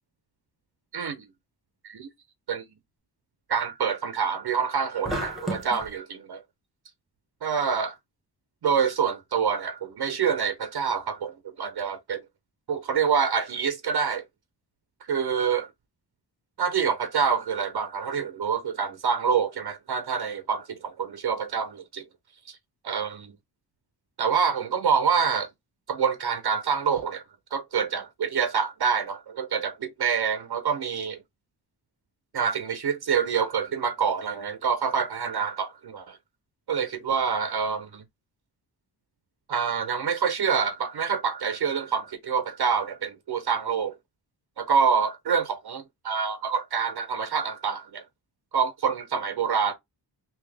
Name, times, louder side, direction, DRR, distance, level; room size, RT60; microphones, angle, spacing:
voice 1, 0.9-1.2 1.8-2.1 2.5-2.6 3.5-6.4 7.4-7.9 8.6-11.3 11.6-12.2 12.7-14.2 15.0-15.7 16.6-22.0 22.5-22.6 22.8-23.3 24.2-25.5 25.9-27.2 27.5-31.2 32.3-36.2 36.7-38.0 39.5-43.9 44.6-48.0 48.5-49.7, right 6 dB, 65° right, 0.8 m, -26 dB
sound 1, 5.0-5.9, equal, ahead, 1.3 m, -32 dB
3.5 x 2.9 x 3.3 m
wide cardioid pair, 90°, 43 cm